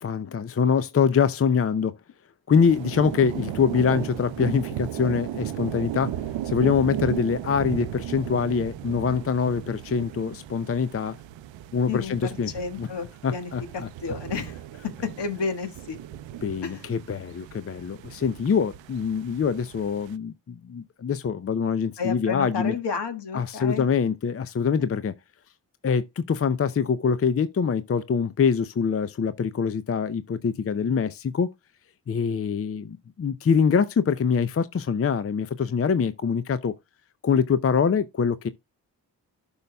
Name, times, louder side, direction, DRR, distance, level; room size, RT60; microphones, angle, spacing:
voice 1, 0.0-2.0 2.5-6.2 6.4-11.2 11.7-12.5 12.8-12.9 13.2-13.9 16.4-22.7 23.3-25.1 25.8-31.5 32.1-36.8 37.2-38.5, left 6 dB, 30° left, 0.6 m, -24 dB
sound 1, 2.6-20.2, right 12 dB, 80° right, 0.6 m, -36 dB
voice 2, 11.9-14.5 15.0-16.0 16.6-16.8 22.0-23.9, left 5 dB, 65° left, 1.6 m, -31 dB
11.5 x 5.5 x 2.2 m
supercardioid pair, 45°, 45 cm